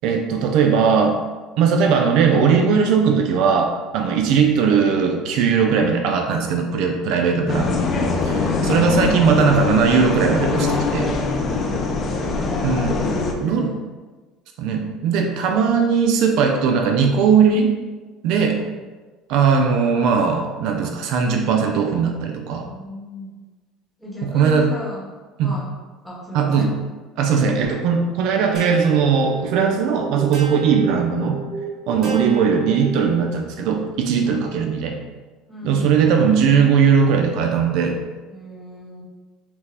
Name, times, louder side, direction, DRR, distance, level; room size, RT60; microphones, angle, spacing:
voice 1, 0.0-1.2 1.6-8.3 8.6-11.1 12.6-13.0 13.4-13.7 14.6-17.7 18.2-18.6 19.3-22.6 24.2-24.7 25.4-25.5 26.3-26.8 27.2-31.4 31.9-35.0 35.6-38.0, right 6 dB, 65° right, 3 dB, 0.4 m, -19 dB
sound 1, 7.5-13.3, left 3 dB, 35° left, 0.5 m, -22 dB
voice 2, 12.9-13.8 18.4-18.9 22.6-23.3 24.0-25.7 26.0-26.8 34.2-34.5 35.5-36.0 38.3-39.0, equal, 5° left, -5 dB, 1.1 m, -36 dB
sound 2, 28.5-33.3, right 4 dB, 45° right, 1.5 m, -33 dB
5.9 x 2.2 x 3.3 m, 1.3 s
cardioid pair, 150°, 0 cm